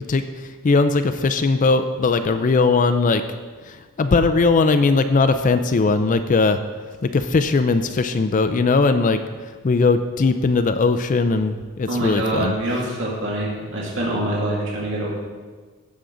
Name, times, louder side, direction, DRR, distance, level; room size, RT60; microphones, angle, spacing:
voice 1, 0.1-3.2 3.6-6.6 7.0-9.2 9.6-12.5, left 3 dB, 35° left, 9 dB, 0.4 m, -19 dB
voice 2, 11.9-15.1, right 1 dB, 60° right, -5 dB, 2.3 m, -25 dB
16.0 x 6.3 x 3.8 m, 1.4 s
head